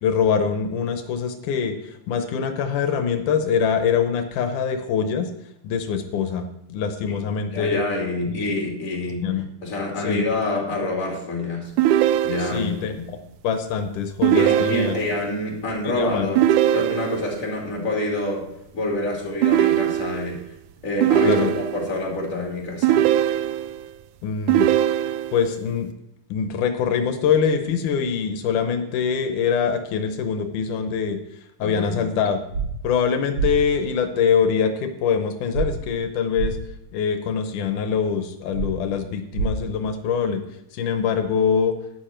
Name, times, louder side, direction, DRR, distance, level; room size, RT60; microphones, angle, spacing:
voice 1, 0.0-5.3 5.6-6.4 6.7-7.8 8.3-8.5 9.2-9.5 10.0-10.3 12.4-13.2 13.4-14.9 15.6-16.3 21.2-21.5 24.2-24.7 25.3-25.9 26.3-31.2 31.6-32.4 32.8-36.6 36.9-40.4 40.7-41.7, left 6 dB, 85° left, 7 dB, 2.4 m, -24 dB
voice 2, 7.5-9.3 9.6-11.7 12.2-13.1 14.3-18.5 18.7-20.4 20.8-23.1 31.6-32.0, left 1 dB, 25° left, -1 dB, 3.0 m, -27 dB
sound 1, 11.8-12.8 14.2-15.3 16.4-17.4 19.4-20.4 21.0-22.0 22.8-23.9 24.5-25.5, right 12 dB, 85° right, 2.0 m, -20 dB
sound 2, 32.5-32.6 33.3-33.5 35.5-35.7 36.3-36.5 38.5-38.7 39.3-39.5, right 6 dB, 45° right, 5.7 m, -24 dB
11.5 x 9.8 x 4.4 m, 0.81 s
omnidirectional pair, 3.5 m